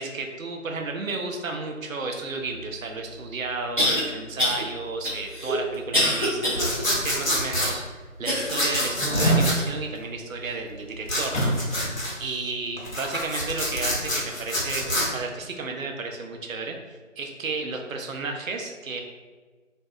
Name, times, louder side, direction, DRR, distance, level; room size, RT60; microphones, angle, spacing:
voice 1, 0.0-11.8 12.2-16.8 17.2-19.0, right 3 dB, 85° right, 3 dB, 0.5 m, -33 dB
sound 1, 2.8-2.9 3.8-4.0 4.4-4.6 5.0-6.6 7.1-7.2 8.2-9.0 9.6-9.7 10.4-10.5, left 1 dB, 40° right, 0.6 m, -25 dB
sound 2, 6.6-7.7 8.5-9.6 11.1-12.1 12.8-15.1, left 1 dB, 85° left, 1.0 m, -27 dB
sound 3, 9.0-9.5 11.3-12.0 12.3-12.4, right 1 dB, 65° left, 0.7 m, -24 dB
2.6 x 2.3 x 2.2 m, 1.3 s
figure-of-eight pair, 170°, 39 cm